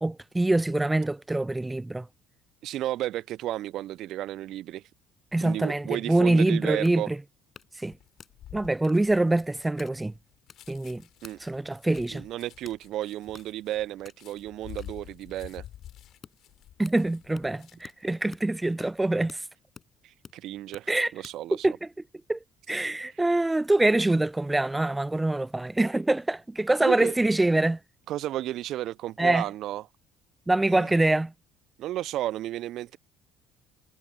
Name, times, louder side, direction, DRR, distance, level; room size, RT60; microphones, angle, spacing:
voice 1, 0.0-2.0 5.3-7.2 7.8-7.9 8.5-10.1 10.7-11.0 11.4-12.2 16.8-19.4 20.9-21.1 21.6-21.7 22.3-22.4 22.7-27.8 29.2-29.4 30.5-31.3, right 2 dB, 10° right, 0.4 m, -24 dB
voice 2, 2.6-4.8 5.4-7.1 11.2-11.4 12.1-15.6 20.0-21.8 26.8-27.2 28.1-29.9 30.7-30.9 31.8-33.0, right 14 dB, 60° right, 0.6 m, -33 dB
sound 1, 6.8-21.5, left 6 dB, 40° left, 7.0 m, -53 dB
sound 2, 7.9-18.0 18.4-18.7, left 12 dB, 55° left, 3.5 m, -49 dB
figure-of-eight pair, 55°, 0 cm